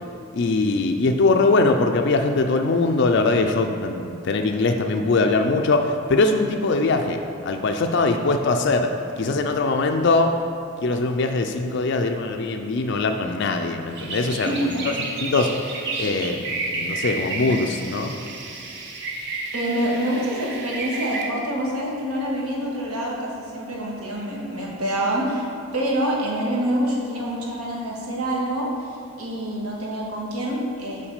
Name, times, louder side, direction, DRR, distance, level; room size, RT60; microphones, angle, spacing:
voice 1, 0.3-7.2 7.5-8.9 9.2-10.3 10.8-14.6 15.2-15.5 16.0-16.4 16.7-18.1, left 3 dB, 50° left, 5 dB, 0.4 m, -21 dB
sound 1, 13.9-21.2, right 3 dB, 50° right, 0.9 m, -31 dB
voice 2, 14.4-14.8 19.5-25.4 25.7-28.7 29.2-31.1, right 1 dB, 85° right, -4 dB, 1.7 m, -26 dB
6.0 x 4.6 x 6.5 m, 2.8 s
head